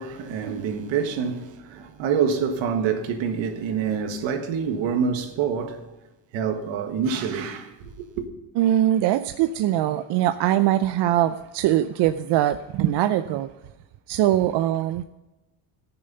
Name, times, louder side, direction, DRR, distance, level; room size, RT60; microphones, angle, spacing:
voice 1, 0.0-5.8 6.3-8.2, right 6 dB, 80° right, 1.7 m, -26 dB
voice 2, 8.6-13.5 14.1-15.0, right 12 dB, 65° right, 0.6 m, -22 dB
14.5 x 6.9 x 5.5 m
cardioid pair, 160°, 45 cm